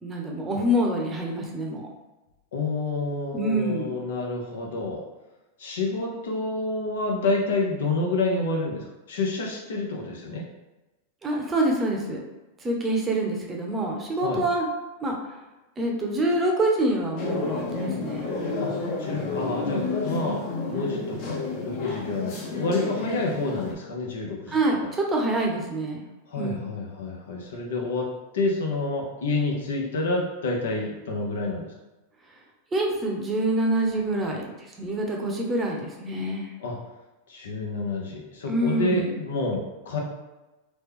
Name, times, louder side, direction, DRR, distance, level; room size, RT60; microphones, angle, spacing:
voice 1, 0.0-1.9 3.3-3.9 11.2-12.2 12.6-14.7 15.0-15.2 15.8-18.3 24.5-26.0 26.4-26.6 32.7-34.5 34.8-36.5 38.5-39.2, right 1 dB, 20° right, 0 dB, 0.8 m, -26 dB
voice 2, 2.5-5.0 5.6-10.4 14.2-14.4 18.6-18.7 19.0-20.4 20.7-24.6 26.3-28.1 28.3-31.7 36.6-36.8 37.3-40.0, left 2 dB, 80° left, -1 dB, 0.8 m, -28 dB
sound 1, 17.2-23.7, left 3 dB, 50° left, 1.0 m, -30 dB
3.1 x 2.2 x 3.6 m, 1.1 s
hypercardioid pair, 115°, 0 cm